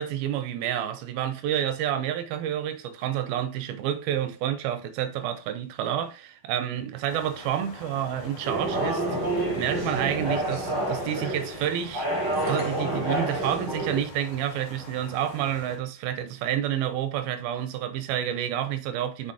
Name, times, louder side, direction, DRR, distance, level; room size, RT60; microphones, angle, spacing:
voice 1, 0.0-12.1 12.5-19.3, right 10 dB, 85° right, 2.6 m, -29 dB
sound 1, 7.1-15.8, left 3 dB, 85° left, 3.8 m, -42 dB
sound 2, 8.4-14.0, right 1 dB, 20° right, 2.5 m, -28 dB
sound 3, 12.3-13.2, equal, 5° right, 3.4 m, -46 dB
7.7 x 6.3 x 2.9 m
omnidirectional pair, 4.3 m